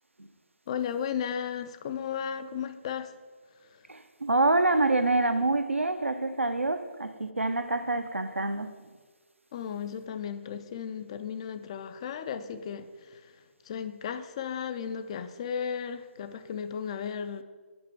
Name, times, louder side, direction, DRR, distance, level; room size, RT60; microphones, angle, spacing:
voice 1, 0.7-3.1 3.7-3.8 9.5-17.4, left 7 dB, 25° left, 0.3 m, -35 dB
voice 2, 3.9-8.7, right 2 dB, 80° right, 0.6 m, -26 dB
8.7 x 5.4 x 4.5 m
figure-of-eight pair, 140°, 7 cm